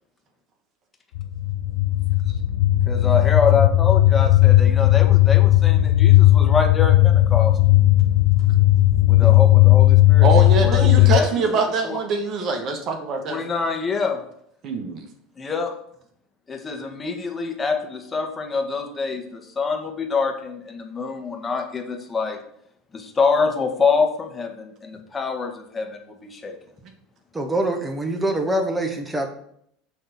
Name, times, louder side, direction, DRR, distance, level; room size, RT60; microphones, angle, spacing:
sound 1, 1.2-11.2, left 16 dB, 70° left, 0.5 m, -16 dB
voice 1, 2.9-7.6 9.1-11.4 11.8-12.0 13.3-14.2 15.4-15.7 16.5-22.4 22.9-26.6, left 4 dB, 25° left, 3 dB, 1.4 m, -25 dB
voice 2, 10.2-13.4 14.6-15.1, right 4 dB, 45° right, 4 dB, 1.2 m, -24 dB
voice 3, 27.3-29.3, right 1 dB, 10° right, 4 dB, 1.3 m, -24 dB
6.4 x 3.4 x 5.8 m, 0.68 s
hypercardioid pair, 75°, 0 cm